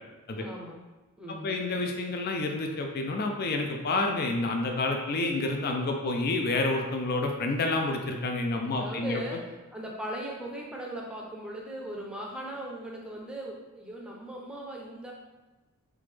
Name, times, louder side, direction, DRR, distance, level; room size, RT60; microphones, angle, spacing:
voice 1, 0.4-0.8 1.2-1.7 8.7-9.4 9.7-15.1, right 1 dB, 5° right, -3 dB, 0.6 m, -38 dB
voice 2, 1.4-9.2, left 2 dB, 45° left, 3 dB, 0.4 m, -29 dB
3.8 x 3.5 x 3.3 m, 1.1 s
head